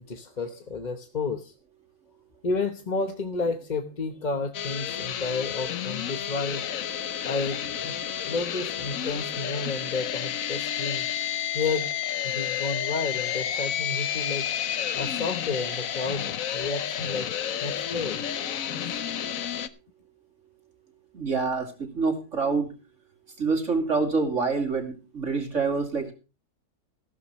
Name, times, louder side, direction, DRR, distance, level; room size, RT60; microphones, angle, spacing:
voice 1, 0.0-1.5 2.4-6.6 7.2-8.0 8.2-11.1 11.5-11.9 12.2-14.5 14.9-17.3 17.6-18.2, left 3 dB, 30° left, 7 dB, 1.0 m, -31 dB
sound 1, 4.5-19.7, left 9 dB, 65° left, 1.2 m, -31 dB
voice 2, 21.1-22.7 23.4-26.1, right 4 dB, 50° right, 4 dB, 3.0 m, -26 dB
15.0 x 13.5 x 3.1 m, 0.31 s
omnidirectional pair, 1.7 m